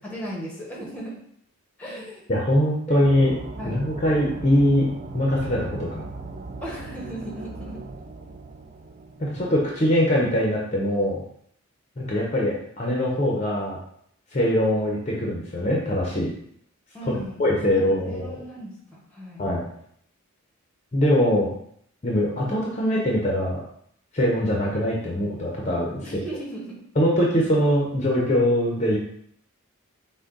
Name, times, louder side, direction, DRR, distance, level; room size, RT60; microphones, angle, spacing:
voice 1, 0.0-1.2 1.8-2.3 2.9-3.0 3.6-3.9 6.6-7.8 16.9-19.4 26.0-26.8, right 1 dB, 5° left, -3 dB, 1.0 m, -36 dB
voice 2, 2.3-3.3 3.6-4.9 5.1-6.0 9.2-11.2 12.0-13.8 14.3-16.3 17.0-17.1 17.4-18.4 19.4-19.7 20.9-21.5 22.0-23.6 24.1-26.0 27.0-29.0, equal, 30° left, -2 dB, 0.7 m, -22 dB
sound 1, 3.0-10.2, right 3 dB, 35° right, 0.4 m, -38 dB
6.0 x 2.2 x 3.9 m, 0.67 s
head